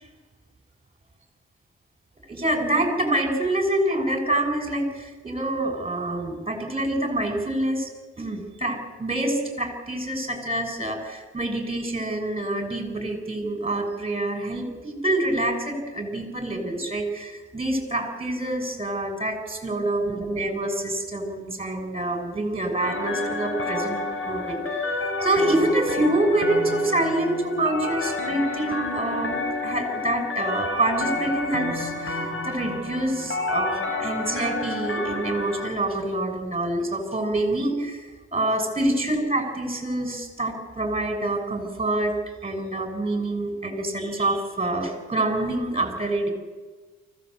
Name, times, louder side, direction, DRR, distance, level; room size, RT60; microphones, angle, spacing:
voice 1, 2.3-7.9 8.2-29.4 29.6-42.1 42.4-46.3, right 1 dB, 20° right, 5 dB, 6.5 m, -26 dB
sound 1, 22.8-35.7, left 2 dB, 45° left, 5.3 m, -29 dB
24.0 x 17.0 x 8.1 m, 1.4 s
cardioid pair, 90°, 30 cm